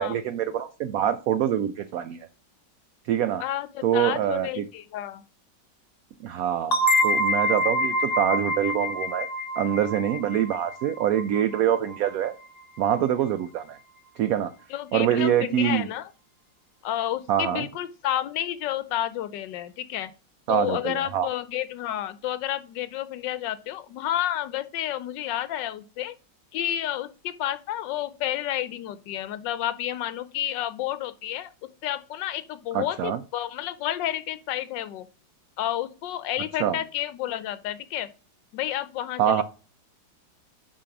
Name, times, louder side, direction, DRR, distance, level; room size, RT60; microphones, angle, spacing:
voice 1, 0.0-2.2 3.0-3.4 3.8-4.7 6.2-9.3 9.6-12.3 12.8-13.8 14.2-14.5 14.9-15.9 17.3-17.7 20.5-21.3 32.7-33.2 36.6-36.8 39.2-39.4, right 10 dB, 70° right, 0.8 m, -25 dB
voice 2, 3.4-5.2 14.7-16.1 16.8-20.1 20.5-26.1 26.5-31.5 31.8-35.1 35.6-38.1 38.5-39.4, left 12 dB, 90° left, 1.3 m, -30 dB
sound 1, 6.7-12.1, left 1 dB, 35° left, 0.7 m, -26 dB
7.0 x 5.1 x 5.9 m
omnidirectional pair, 1.9 m